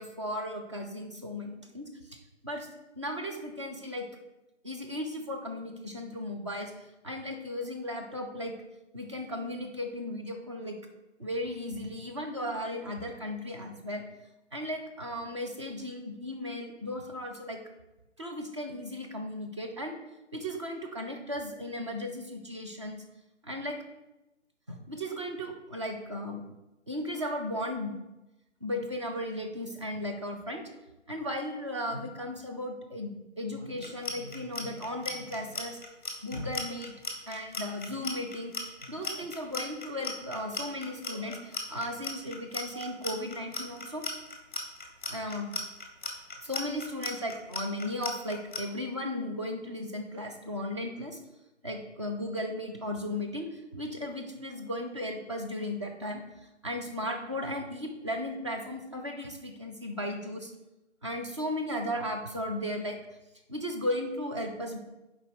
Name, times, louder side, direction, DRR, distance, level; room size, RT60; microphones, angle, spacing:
voice 1, 0.0-2.2 2.4-2.7 3.0-4.0 4.6-6.7 7.0-8.5 8.9-10.8 11.2-14.0 14.5-17.6 18.2-19.9 20.3-23.0 23.4-23.8 24.7-26.4 26.9-27.9 28.6-30.6 31.1-35.8 36.2-36.9 37.3-38.5 38.8-44.0 45.1-45.5 46.4-51.2 51.6-56.2 56.6-60.5 61.0-63.0 63.5-64.8, left 1 dB, 25° right, 2 dB, 0.8 m, -36 dB
Clock, 33.8-48.6, left 4 dB, 10° left, 0.9 m, -36 dB
7.3 x 5.1 x 6.5 m, 0.99 s
figure-of-eight pair, 150°, 36 cm